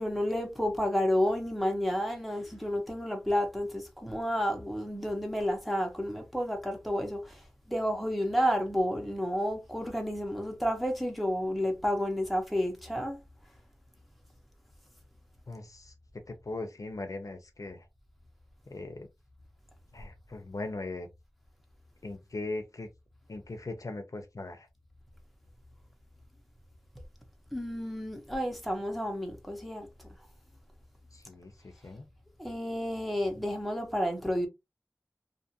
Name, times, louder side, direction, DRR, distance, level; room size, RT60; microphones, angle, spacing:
voice 1, 0.0-13.2 27.5-29.9 32.4-34.5, equal, ahead, 0.9 m, -31 dB
voice 2, 15.5-15.9 16.3-17.9 18.7-19.1 19.9-21.1 22.0-22.9 23.3-24.7 31.1-32.0, left 2 dB, 75° left, 0.5 m, -39 dB
2.6 x 2.4 x 2.7 m
wide cardioid pair, 50°, 6 cm